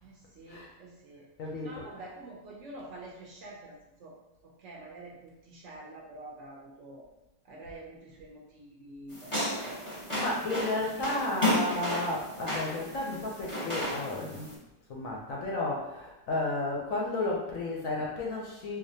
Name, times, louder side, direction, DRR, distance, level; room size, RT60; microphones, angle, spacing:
voice 1, 0.0-1.3 1.6-4.2 4.4-7.1 7.4-10.0 10.3-11.3, right 2 dB, 75° right, -3 dB, 0.7 m, -47 dB
voice 2, 1.4-1.8 9.9-14.5 14.9-18.8, left 2 dB, 65° left, -2 dB, 0.8 m, -33 dB
sound 1, 9.1-14.5, left 1 dB, 25° left, 0.8 m, -33 dB
4.1 x 2.6 x 2.7 m, 0.97 s
omnidirectional pair, 1.9 m